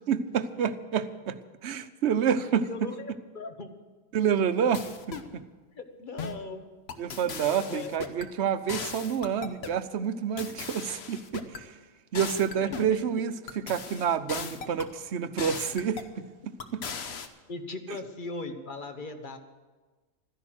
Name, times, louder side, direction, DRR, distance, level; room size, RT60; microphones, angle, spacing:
voice 1, 0.1-1.4 1.6-2.7 4.1-5.4 7.0-11.7 12.1-16.8, right 7 dB, 60° right, 12 dB, 1.0 m, -28 dB
voice 2, 2.4-3.7 5.8-6.6 7.7-7.9 12.6-12.7 17.5-19.4, left 3 dB, 40° left, 7 dB, 1.2 m, -38 dB
sound 1, 4.7-5.3 6.2-6.5 6.9-8.3 8.7-9.8 10.4-11.6 12.1-13.0 13.5-14.9 15.4-16.1 16.6-17.3, left 5 dB, 55° left, 1.1 m, -38 dB
13.0 x 10.5 x 7.7 m, 1.3 s
omnidirectional pair, 1.3 m